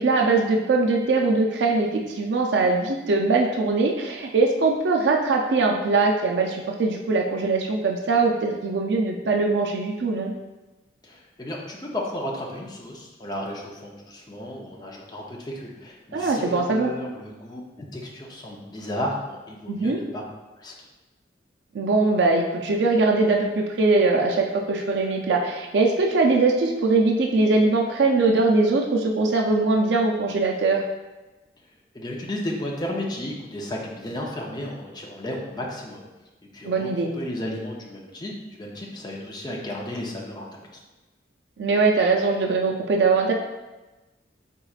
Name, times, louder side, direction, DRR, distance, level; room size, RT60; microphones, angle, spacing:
voice 1, 0.0-10.3 16.1-16.9 19.7-20.0 21.7-30.8 36.6-37.1 41.6-43.3, right 3 dB, 75° right, 2 dB, 0.4 m, -21 dB
voice 2, 11.0-20.2 20.6-20.9 31.9-36.1 36.5-40.8, left 1 dB, 25° left, -2 dB, 0.6 m, -33 dB
4.6 x 3.9 x 2.4 m, 1.1 s
head